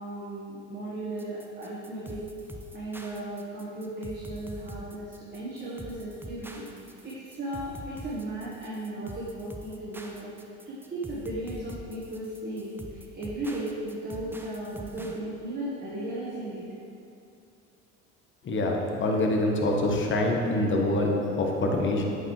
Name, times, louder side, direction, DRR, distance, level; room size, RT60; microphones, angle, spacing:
voice 1, 0.0-2.3 2.7-10.3 10.6-16.6, right 1 dB, 30° right, -8 dB, 1.5 m, -36 dB
sound 1, 1.2-15.2, right 1 dB, 5° right, 0.5 m, -44 dB
voice 2, 18.4-22.0, left 1 dB, 35° left, 0 dB, 1.1 m, -25 dB
8.4 x 4.8 x 3.2 m, 2.6 s
hypercardioid pair, 75°, 36 cm